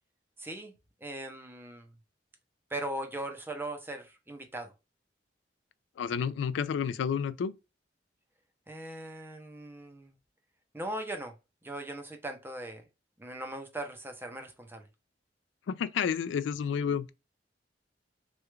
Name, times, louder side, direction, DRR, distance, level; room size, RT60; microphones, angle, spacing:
voice 1, 0.4-0.7 1.0-2.0 2.7-4.7 8.7-10.1 10.7-11.3 11.6-12.8 13.2-14.9, right 1 dB, 10° right, 0.6 m, -39 dB
voice 2, 6.0-7.5 15.7-17.1, left 7 dB, 85° left, 0.3 m, -30 dB
3.2 x 2.3 x 3.1 m
head